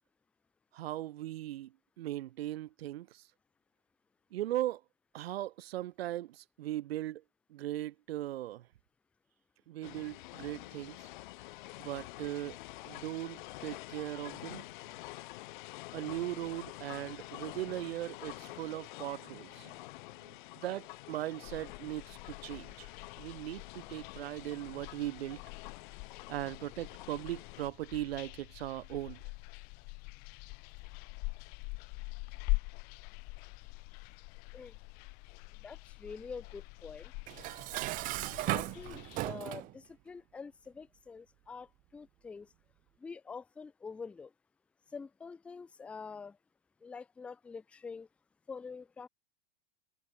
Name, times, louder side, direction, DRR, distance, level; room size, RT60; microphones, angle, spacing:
voice 1, 0.7-1.7 2.0-3.2 4.3-4.8 5.1-7.2 7.5-8.6 9.7-11.0 11.8-12.6 12.8-14.7 15.9-19.7 20.2-20.3 20.6-22.9 23.2-25.4 26.3-29.2, right 14 dB, 85° right, 1.5 m, -38 dB
sound 1, 9.8-27.7, left 20 dB, 55° left, 5.0 m, -48 dB
sound 2, 21.4-39.3, left 30 dB, 30° left, 0.8 m, -44 dB
voice 2, 35.6-37.1 38.4-42.5 43.0-44.3 44.9-46.4 46.8-48.1 48.5-49.1, left 5 dB, 5° left, 0.4 m, -46 dB
Dishes pots and pans, 37.3-39.7, right 20 dB, 30° right, 0.9 m, -36 dB
supercardioid pair, 170°, 30 cm